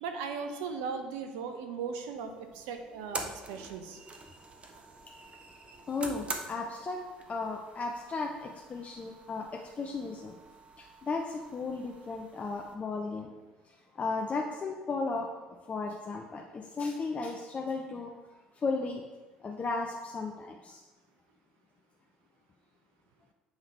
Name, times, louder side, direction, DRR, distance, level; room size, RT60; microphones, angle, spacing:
voice 1, 0.0-4.0, right 5 dB, 70° right, 6 dB, 0.7 m, -38 dB
sound 1, 2.1-12.8, right 3 dB, 30° right, 0.9 m, -45 dB
voice 2, 5.9-7.0 7.3-10.4 10.8-13.3 13.7-15.3 15.7-18.1 18.6-19.0 19.4-20.8, left 3 dB, 35° left, 1 dB, 0.6 m, -35 dB
8.0 x 3.8 x 4.4 m, 1.2 s
hypercardioid pair, 55°, 4 cm